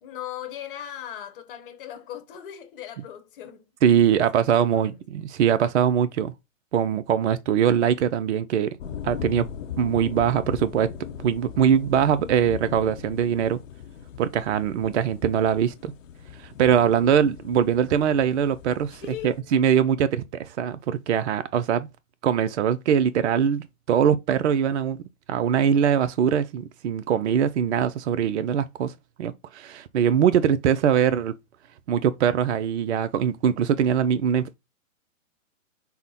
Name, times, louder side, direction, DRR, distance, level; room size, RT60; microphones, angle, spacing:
voice 1, 0.0-3.7 4.3-5.0 16.7-16.9 18.9-19.4, left 10 dB, 40° left, 1.0 m, -39 dB
voice 2, 3.8-6.3 6.7-8.8 9.0-9.5 9.8-10.9 11.2-13.6 14.2-15.9 16.4-21.9 22.2-25.0 25.3-28.9 29.2-31.3 31.9-34.5, right 8 dB, 55° right, 0.5 m, -22 dB
sound 1, 8.8-19.4, left 8 dB, 65° left, 0.7 m, -39 dB
5.6 x 2.1 x 3.9 m
hypercardioid pair, 125°, 41 cm